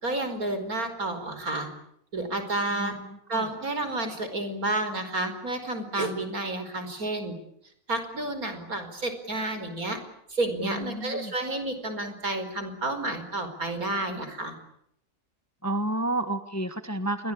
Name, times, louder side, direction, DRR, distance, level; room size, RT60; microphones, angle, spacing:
voice 1, 0.0-1.7 2.1-3.0 3.3-7.4 7.9-10.0 10.3-14.5, right 2 dB, 70° right, 9 dB, 5.3 m, -30 dB
voice 2, 10.6-11.3 15.6-17.3, right 1 dB, 10° left, 9 dB, 1.5 m, -30 dB
28.0 x 23.5 x 8.7 m, 0.73 s
omnidirectional pair, 1.6 m